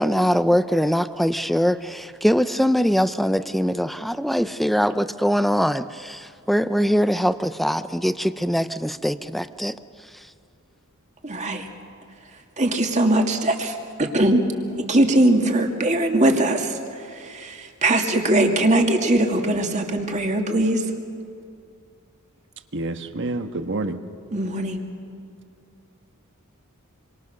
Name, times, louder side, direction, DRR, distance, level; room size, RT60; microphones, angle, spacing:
voice 1, 0.0-9.8, equal, ahead, 12 dB, 0.5 m, -22 dB
voice 2, 11.2-11.7 12.6-14.4 14.8-16.8 17.1-20.8 24.3-24.8, right 1 dB, 30° right, 3 dB, 2.1 m, -21 dB
voice 3, 22.7-24.0, right 2 dB, 55° right, 8 dB, 1.3 m, -28 dB
27.5 x 23.5 x 6.5 m, 2.4 s
head